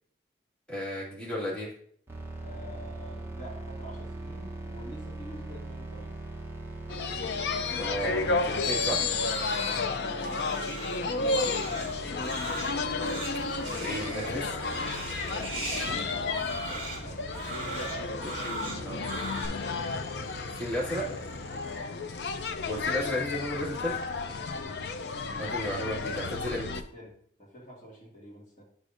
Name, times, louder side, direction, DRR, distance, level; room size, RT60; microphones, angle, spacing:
voice 1, 0.7-1.7 7.7-9.1 13.7-14.6 18.8-19.0 20.4-21.0 22.7-24.0 25.4-26.7, equal, 5° left, -8 dB, 2.2 m, -33 dB
sound 1, 2.1-21.8, right 2 dB, 15° right, 0.9 m, -42 dB
voice 2, 2.4-6.2 9.5-9.9 11.6-13.0 15.3-19.5 21.6-22.0 22.6-22.8 24.2-24.8 25.1-28.6, equal, 45° left, -4 dB, 2.0 m, -47 dB
sound 2, 6.9-26.8, left 4 dB, 65° left, 0.5 m, -32 dB
Crying sobbing, 8.6-19.5, right 3 dB, 35° right, 2.8 m, -39 dB
11.0 x 4.9 x 2.5 m, 0.62 s
head